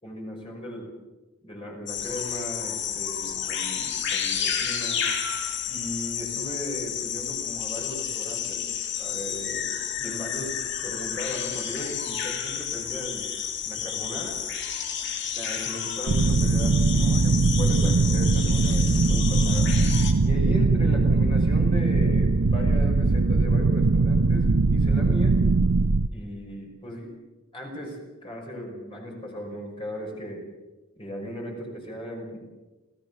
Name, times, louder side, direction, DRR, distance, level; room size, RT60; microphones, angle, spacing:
voice 1, 0.0-0.9 1.4-5.1 5.7-10.5 10.8-13.3 13.7-14.4 15.3-19.7 20.2-25.4 26.1-27.1 27.5-30.4 31.0-32.4, equal, 25° left, 0 dB, 5.6 m, -37 dB
sound 1, 1.9-20.1, left 8 dB, 55° left, 2.6 m, -31 dB
sound 2, 16.1-26.1, right 3 dB, 75° right, 0.8 m, -21 dB
27.5 x 16.5 x 6.9 m, 1.2 s
head